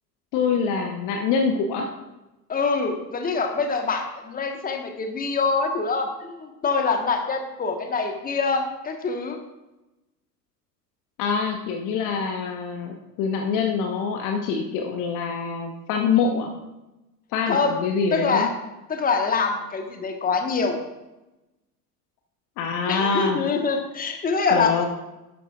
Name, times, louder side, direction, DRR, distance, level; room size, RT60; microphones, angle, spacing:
voice 1, 0.3-1.9 11.2-16.5 17.3-18.5 22.6-23.4 24.5-24.9, left 5 dB, 40° left, 3 dB, 1.1 m, -25 dB
voice 2, 2.5-9.4 17.5-17.7 18.1-18.5 18.9-20.8 22.9-24.9, left 4 dB, 15° left, 5 dB, 1.4 m, -25 dB
11.5 x 11.5 x 2.4 m, 1.0 s
figure-of-eight pair, 75°, 48 cm